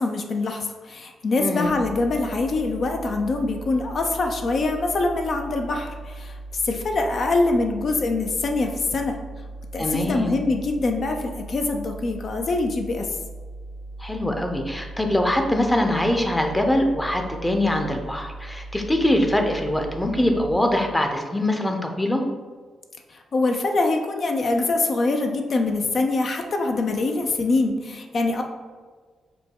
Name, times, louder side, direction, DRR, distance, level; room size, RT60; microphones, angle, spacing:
voice 1, 0.0-9.2 9.7-13.1 23.1-28.4, left 3 dB, 55° left, 4 dB, 0.5 m, -24 dB
voice 2, 1.4-1.7 9.8-10.4 14.0-22.2, left 1 dB, 10° left, 4 dB, 0.6 m, -23 dB
sound 1, 1.6-20.5, right 2 dB, 80° left, 1.1 m, -38 dB
5.1 x 2.2 x 4.6 m, 1.5 s
cardioid pair, 80°, 0 cm